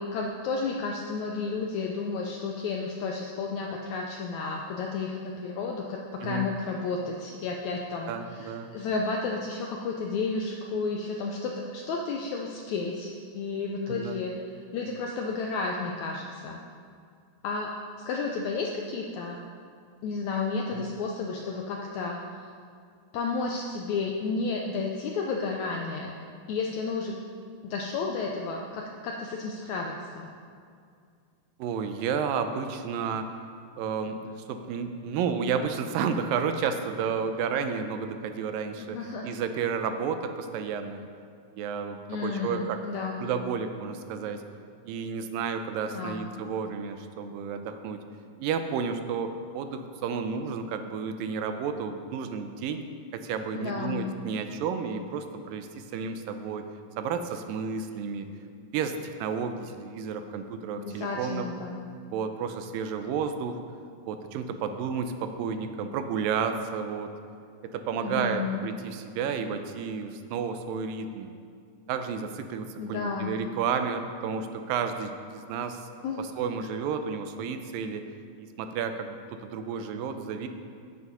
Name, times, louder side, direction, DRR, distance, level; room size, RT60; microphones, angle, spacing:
voice 1, 0.0-14.3 14.7-16.6 17.4-17.7 18.0-19.4 20.0-22.2 23.1-26.2 26.5-27.1 27.6-30.3 38.8-39.3 42.1-43.3 45.9-46.3 53.5-54.1 60.8-61.9 68.0-68.6 72.8-73.4 76.0-76.3 79.8-79.9, left 4 dB, 80° left, 1 dB, 1.6 m, -32 dB
voice 2, 8.1-8.7 13.9-14.2 20.7-20.8 31.6-33.3 33.8-41.0 41.5-42.8 43.2-44.4 44.9-48.0 48.4-52.9 53.1-56.7 57.0-58.3 58.7-61.5 62.1-63.6 64.1-67.1 67.6-71.3 71.9-75.9 76.2-78.0 78.4-80.5, right 6 dB, 85° right, 7 dB, 2.3 m, -31 dB
9.6 x 8.4 x 5.4 m, 2.3 s
omnidirectional pair, 4.0 m